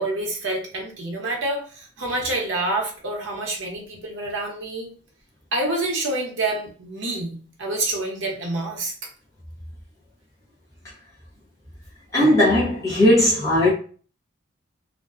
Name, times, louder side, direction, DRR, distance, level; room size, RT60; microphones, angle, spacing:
voice 1, 0.0-4.9 5.5-8.9, right 2 dB, 65° right, 0.8 m, -27 dB
voice 2, 12.1-13.7, left 1 dB, 15° left, 0.6 m, -17 dB
2.5 x 2.1 x 2.4 m
head